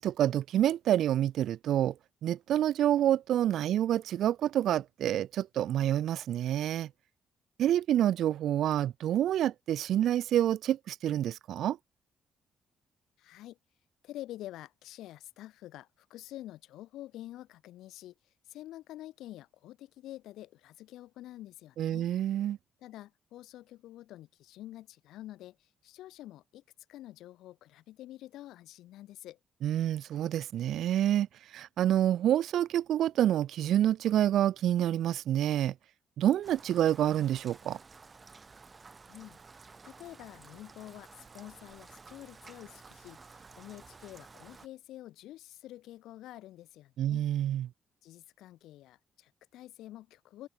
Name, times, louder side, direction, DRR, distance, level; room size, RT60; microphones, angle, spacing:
voice 1, 0.0-1.9 2.2-6.9 7.6-11.8 21.8-22.6 29.6-31.3 31.5-35.7 36.2-37.8 47.0-47.7, right 11 dB, 75° right, 0.4 m, -28 dB
voice 2, 13.2-13.6 14.0-18.1 18.5-22.1 22.8-26.6 26.9-29.4 39.1-39.4 39.8-47.2 48.0-50.5, left 14 dB, 85° left, 1.5 m, -48 dB
Rain, 36.4-44.7, right 4 dB, 30° right, 7.5 m, -53 dB
open air
cardioid pair, 90°, 0 cm